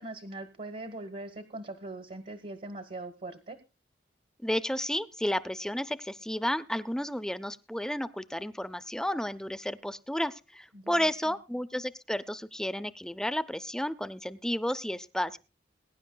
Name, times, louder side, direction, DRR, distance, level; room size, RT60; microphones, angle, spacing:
voice 1, 0.0-3.6 10.7-11.1, right 2 dB, 50° right, 10 dB, 1.1 m, -41 dB
voice 2, 4.4-15.4, equal, 5° left, 13 dB, 0.5 m, -32 dB
21.5 x 10.0 x 2.2 m, 0.31 s
head